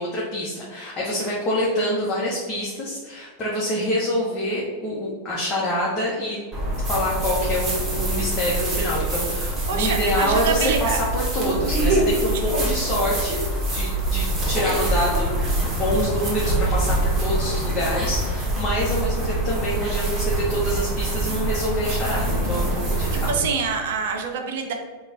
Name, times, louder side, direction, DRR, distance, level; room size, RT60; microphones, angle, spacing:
voice 1, 0.0-6.4 6.9-13.4 13.7-23.3, left 1 dB, 25° left, -6 dB, 1.0 m, -26 dB
sound 1, 6.5-23.3, right 2 dB, 20° right, 1.4 m, -24 dB
voice 2, 9.7-11.0 11.4-11.9 12.5-12.6 23.1-24.7, right 5 dB, 55° right, 3 dB, 0.6 m, -26 dB
5.1 x 2.4 x 4.1 m, 1.5 s
figure-of-eight pair, 90°, 0 cm